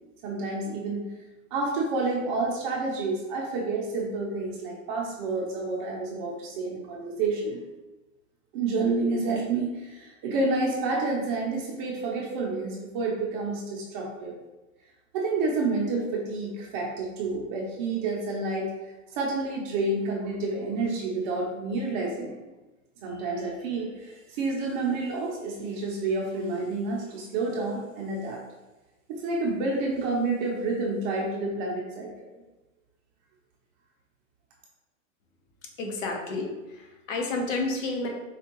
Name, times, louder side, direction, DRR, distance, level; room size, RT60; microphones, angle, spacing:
voice 1, 0.2-1.1 1.5-7.6 8.5-14.4 15.1-18.7 19.1-22.4 23.0-28.4 29.1-32.1, right 3 dB, 35° right, -2 dB, 0.6 m, -29 dB
voice 2, 35.8-38.1, left 3 dB, 65° left, 1 dB, 1.0 m, -30 dB
4.3 x 2.4 x 2.9 m, 1.1 s
hypercardioid pair, 130°, 41 cm